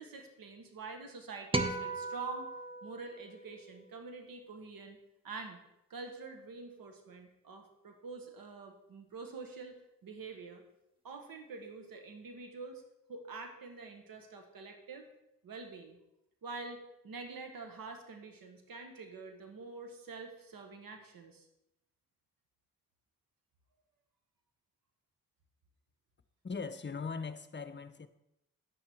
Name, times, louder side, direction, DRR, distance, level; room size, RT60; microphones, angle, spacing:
voice 1, 0.0-2.5 2.8-5.0 5.2-5.6 5.9-9.8 10.0-10.6 11.0-12.8 13.1-15.1 15.4-16.0 16.4-21.5, right 4 dB, 90° right, 1.5 m, -46 dB
sound 1, 1.5-4.0, right 2 dB, 15° right, 1.0 m, -37 dB
voice 2, 26.4-28.1, left 5 dB, 35° left, 0.8 m, -40 dB
9.8 x 8.5 x 4.5 m
cardioid pair, 60°, 33 cm